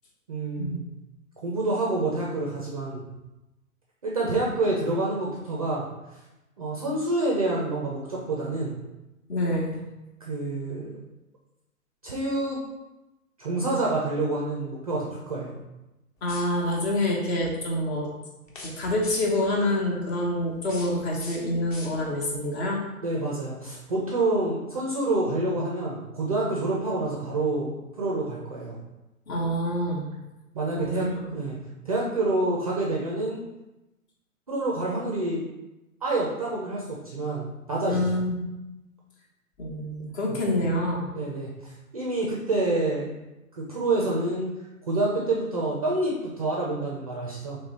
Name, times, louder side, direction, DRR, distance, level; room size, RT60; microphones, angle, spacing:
voice 1, 0.3-0.8 1.4-3.0 4.0-5.9 6.6-8.8 10.2-10.9 12.0-12.6 13.4-15.5 23.0-28.8 30.5-31.6 31.9-33.4 34.5-35.4 36.0-38.1 40.2-40.4 41.1-43.1 43.5-44.5 44.9-47.6, right 2 dB, 25° right, -4 dB, 0.4 m, -27 dB
voice 2, 9.3-9.8 16.2-18.1 18.6-22.8 29.3-30.1 30.7-31.3 37.9-38.3 39.6-41.1, left 1 dB, 45° left, -2 dB, 1.2 m, -27 dB
sound 1, 16.2-16.9 18.4-19.5 20.5-22.3, left 2 dB, 25° left, 0.6 m, -44 dB
3.1 x 3.1 x 4.0 m, 1.0 s
hypercardioid pair, 130°, 45 cm